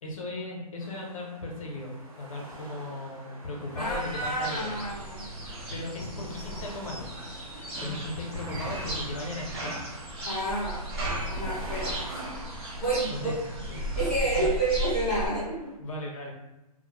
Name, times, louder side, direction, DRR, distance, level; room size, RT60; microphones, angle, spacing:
voice 1, 0.0-4.7 5.7-7.0 7.8-9.8 13.1-13.4 14.4-14.5 15.8-16.3, left 1 dB, 55° left, -1 dB, 0.7 m, -37 dB
sound 1, 0.8-15.7, right 2 dB, 60° right, 1.0 m, -47 dB
voice 2, 3.8-5.3 10.2-10.8 11.3-12.2 12.8-13.3 14.0-15.7, right 2 dB, ahead, -14 dB, 0.5 m, -29 dB
sound 2, 3.8-15.3, equal, 40° right, 0.7 m, -36 dB
2.0 x 2.0 x 3.0 m, 0.98 s
hypercardioid pair, 150°, 20 cm